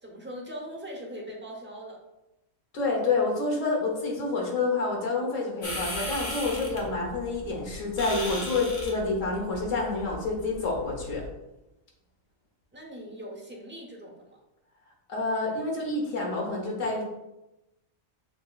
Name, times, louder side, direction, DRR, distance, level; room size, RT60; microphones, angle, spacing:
voice 1, 0.0-2.0 12.7-14.4, equal, 10° right, -2 dB, 0.6 m, -41 dB
voice 2, 2.7-11.2 15.1-17.0, left 3 dB, 65° left, -1 dB, 1.4 m, -28 dB
sound 1, 5.6-11.3, left 1 dB, 45° left, 1.1 m, -37 dB
6.7 x 2.8 x 2.4 m, 0.94 s
omnidirectional pair, 1.4 m